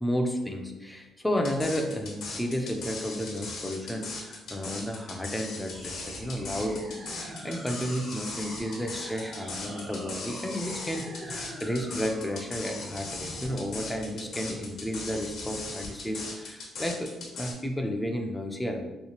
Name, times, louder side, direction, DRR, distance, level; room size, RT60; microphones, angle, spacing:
voice 1, 0.0-6.9 7.1-18.8, equal, 10° left, 3 dB, 0.5 m, -32 dB
sound 1, 1.4-17.5, left 3 dB, 75° left, 0.9 m, -39 dB
sound 2, 5.7-15.7, right 1 dB, 50° right, 1.0 m, -43 dB
3.1 x 2.8 x 2.9 m, 1.1 s
cardioid pair, 90°, 0 cm